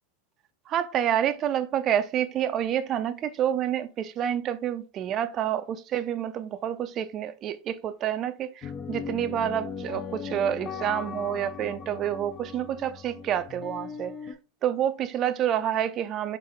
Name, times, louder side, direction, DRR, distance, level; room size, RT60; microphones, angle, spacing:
voice 1, 0.7-14.1 14.6-16.4, right 10 dB, 40° right, 0.4 m, -28 dB
sound 1, 8.6-14.3, left 6 dB, 35° left, 0.5 m, -38 dB
3.9 x 3.2 x 3.5 m
hypercardioid pair, 95°, 0 cm